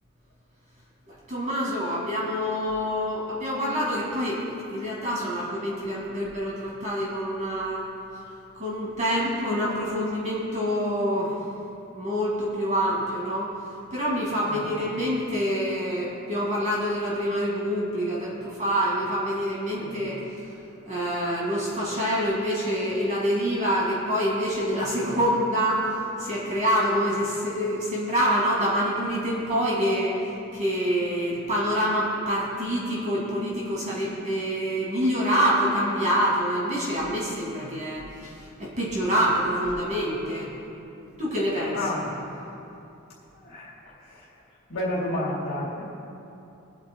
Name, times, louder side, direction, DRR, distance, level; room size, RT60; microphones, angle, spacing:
voice 1, 1.1-7.8 8.5-11.3 11.9-13.5 13.9-20.2 20.9-30.2 30.5-40.5 41.2-41.8, equal, 35° right, -6 dB, 2.0 m, -26 dB
voice 2, 41.7-42.1 43.3-43.7 44.1-44.3 44.7-45.8, left 1 dB, 75° left, -7 dB, 2.0 m, -30 dB
24.0 x 8.6 x 2.2 m, 2.8 s
head